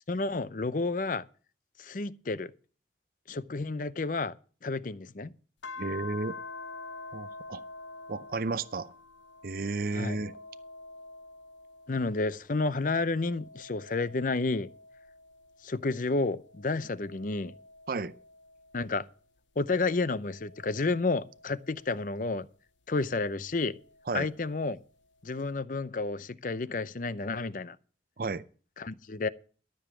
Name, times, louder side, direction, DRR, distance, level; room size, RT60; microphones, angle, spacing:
voice 1, 0.1-1.2 1.8-2.5 3.3-4.3 4.6-5.3 9.9-10.2 11.9-14.7 15.6-17.5 18.7-19.0 19.6-22.5 22.9-23.7 24.1-24.8 25.2-27.8 28.8-29.3, left 3 dB, 45° left, 0.6 m, -31 dB
sound 1, 5.6-12.3 12.8-15.7 16.3-19.1 19.8-22.3 23.6-24.7, left 3 dB, 90° left, 0.8 m, -48 dB
voice 2, 5.8-6.4 7.1-7.6 8.1-8.9 9.4-10.3 17.9-18.1 24.1-24.3 28.2-28.4, right 3 dB, 50° right, 0.5 m, -33 dB
13.5 x 7.0 x 7.3 m
head